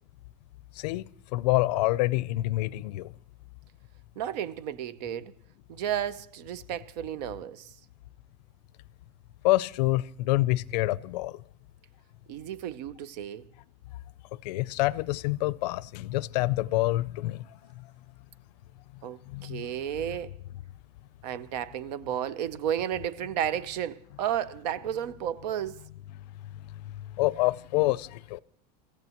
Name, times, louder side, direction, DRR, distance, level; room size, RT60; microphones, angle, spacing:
voice 1, 1.3-3.1 9.4-11.4 14.4-17.4 19.3-19.7 27.2-28.4, left 18 dB, 85° left, 0.5 m, -27 dB
voice 2, 4.2-5.3 5.7-7.7 12.3-13.4 19.0-20.3 21.2-25.8, right 10 dB, 80° right, 0.7 m, -33 dB
27.0 x 15.0 x 3.0 m
supercardioid pair, 170°, 21 cm